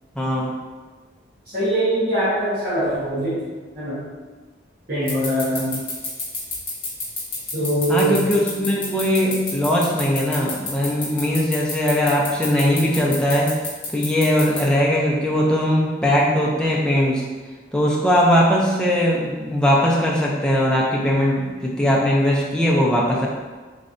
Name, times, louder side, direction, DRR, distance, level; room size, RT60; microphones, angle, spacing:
voice 1, 0.2-0.5 5.5-5.8 7.9-13.6 13.9-17.2 17.7-23.3, equal, 5° left, -4 dB, 0.5 m, -20 dB
voice 2, 1.4-3.5 3.7-4.0 4.9-5.7 7.5-8.2, right 1 dB, 50° right, -13 dB, 1.3 m, -22 dB
sound 1, 5.1-14.6, left 4 dB, 25° left, 0.9 m, -28 dB
3.8 x 3.2 x 2.6 m, 1.3 s
head